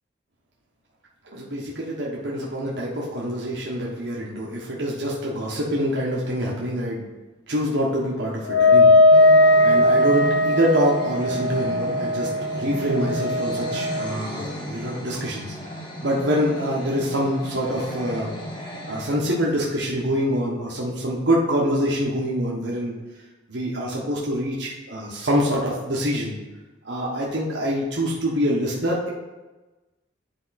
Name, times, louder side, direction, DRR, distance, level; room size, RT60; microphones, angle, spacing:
voice 1, 1.2-7.0 7.5-15.5 16.0-18.3 18.9-22.9 23.5-26.3 26.8-29.1, equal, 65° right, -4 dB, 1.2 m, -25 dB
Wind instrument woodwind instrument, 8.5-14.1, left 1 dB, 65° left, 0.4 m, -18 dB
sound 1, 9.1-19.1, equal, 25° left, 1.0 m, -35 dB
9.9 x 3.6 x 4.2 m, 1.1 s
head